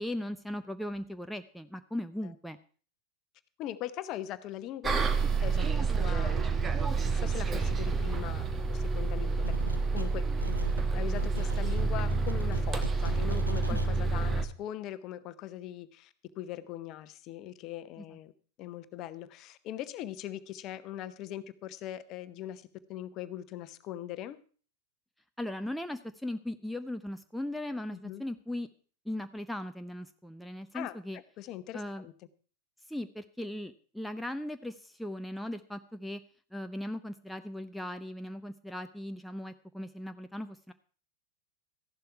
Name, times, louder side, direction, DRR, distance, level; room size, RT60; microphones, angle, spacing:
voice 1, 0.0-2.6 13.7-13.8 18.0-18.1 25.4-28.7 29.1-31.2 31.7-32.1 32.9-36.2 36.5-40.7, left 1 dB, ahead, 8 dB, 0.7 m, -38 dB
voice 2, 3.6-5.1 5.4-9.5 9.9-10.6 10.9-16.1 16.4-18.3 18.6-24.4 27.9-28.2 30.7-31.0 31.4-32.1, left 12 dB, 35° left, 13 dB, 0.9 m, -41 dB
Bus, 4.8-14.5, right 4 dB, 20° right, 1.2 m, -29 dB
sound 1, 9.4-10.1 10.4-13.9, right 1 dB, 85° right, 1.1 m, -39 dB
14.0 x 11.5 x 4.7 m, 0.41 s
figure-of-eight pair, 90°, 0 cm